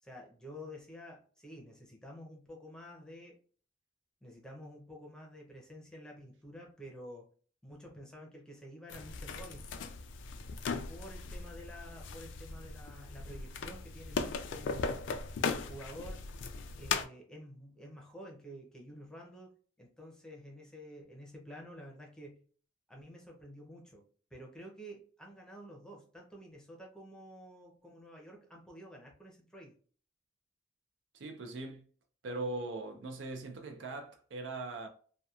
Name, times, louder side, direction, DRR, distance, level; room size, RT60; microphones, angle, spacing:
voice 1, 0.0-3.4 4.2-7.3 7.6-9.8 10.9-15.0 15.4-16.2 16.8-19.5 19.8-22.4 22.9-24.0 24.3-29.8, equal, 5° left, 0.5 m, -50 dB
sound 1, 8.9-17.1, left 5 dB, 85° left, 0.3 m, -38 dB
voice 2, 31.1-31.8 32.2-34.9, right 2 dB, 90° right, 0.5 m, -40 dB
2.8 x 2.2 x 2.3 m
head